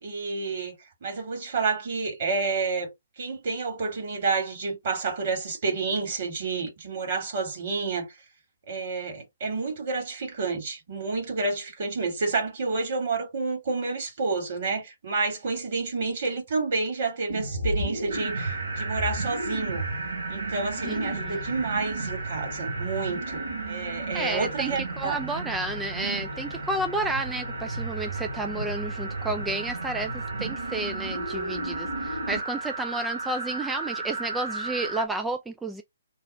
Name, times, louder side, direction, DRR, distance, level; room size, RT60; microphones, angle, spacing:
voice 1, 0.0-0.7 1.0-2.9 3.2-8.1 8.7-19.8 20.3-25.2, right 4 dB, 50° right, 2.0 m, -29 dB
sound 1, 17.3-32.4, right 2 dB, 90° right, 1.3 m, -34 dB
sound 2, 18.1-35.0, right 3 dB, 70° right, 1.2 m, -36 dB
voice 2, 24.1-35.8, right 2 dB, 5° right, 0.3 m, -31 dB
3.3 x 2.3 x 4.3 m
figure-of-eight pair, 130°, 0 cm